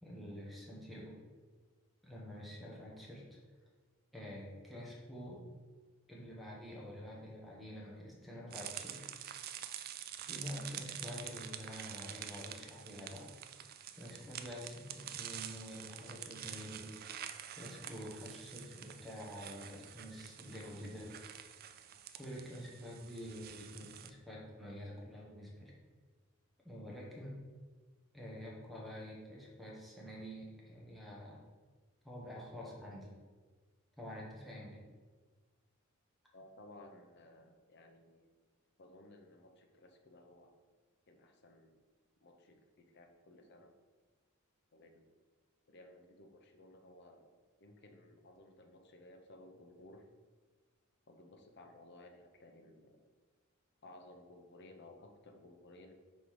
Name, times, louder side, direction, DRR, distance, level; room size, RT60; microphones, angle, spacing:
voice 1, 0.0-1.2 2.0-3.4 4.1-5.4 6.1-9.1 10.2-13.3 13.9-16.9 17.6-21.2 22.1-25.7 26.6-27.5 28.1-31.4 32.0-33.1 34.0-34.8, equal, ahead, -4 dB, 1.3 m, -47 dB
sound 1, 8.5-24.1, right 10 dB, 45° right, 0.3 m, -48 dB
voice 2, 36.3-38.3 38.8-40.6 41.1-41.8 42.2-43.8 44.7-45.1 45.7-47.3 47.6-50.1 51.1-53.0 53.8-55.9, left 1 dB, 55° left, 4 dB, 0.8 m, -58 dB
5.2 x 3.9 x 4.8 m, 1.4 s
head